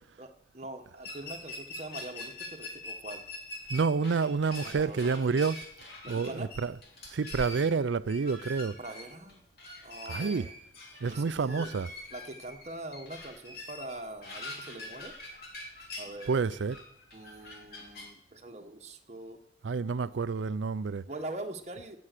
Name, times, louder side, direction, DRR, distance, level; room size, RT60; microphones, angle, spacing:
voice 1, 0.2-3.3 4.6-5.4 6.0-6.5 8.8-9.4 9.8-10.5 11.1-11.7 12.1-15.1 16.0-16.6 17.1-19.4 21.1-22.0, right 2 dB, 35° right, 1.2 m, -43 dB
sound 1, 1.0-18.1, left 2 dB, 55° left, 3.2 m, -44 dB
voice 2, 3.7-5.6 6.1-6.7 7.1-8.8 10.1-10.5 11.0-11.9 16.3-16.8 19.6-21.0, right 5 dB, 85° right, 0.5 m, -29 dB
17.5 x 7.1 x 6.6 m
head